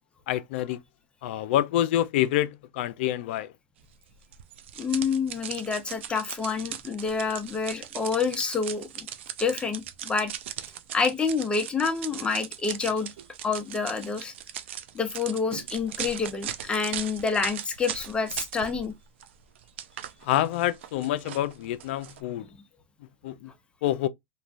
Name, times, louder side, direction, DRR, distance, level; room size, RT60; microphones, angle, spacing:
voice 1, 0.3-0.8 1.2-3.5 20.2-22.5 23.2-23.5 23.8-24.1, left 13 dB, 70° left, 0.4 m, -27 dB
sound 1, 4.3-18.9 19.2-22.2, right 10 dB, 85° right, 0.4 m, -39 dB
voice 2, 4.8-9.1 9.4-10.3 10.9-13.1 13.4-14.3 14.9-18.9, left 5 dB, 15° left, 0.7 m, -28 dB
3.1 x 2.2 x 2.5 m
supercardioid pair, 125°, 6 cm